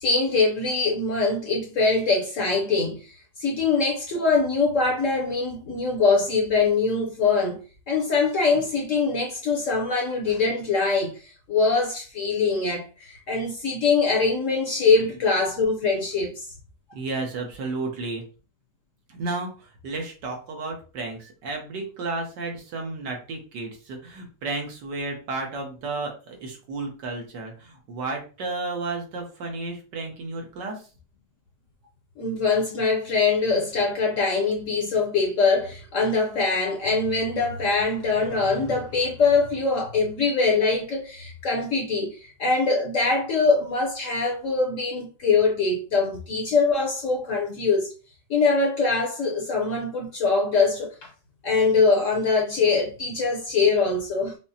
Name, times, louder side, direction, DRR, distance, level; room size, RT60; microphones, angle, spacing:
voice 1, 0.0-7.6 7.9-16.4 32.2-47.9 48.3-50.9 51.4-54.4, left 4 dB, 55° left, 0.9 m, -23 dB
voice 2, 16.9-18.2 19.1-30.9, right 3 dB, 75° right, 1.6 m, -32 dB
5.2 x 2.0 x 2.8 m
omnidirectional pair, 1.9 m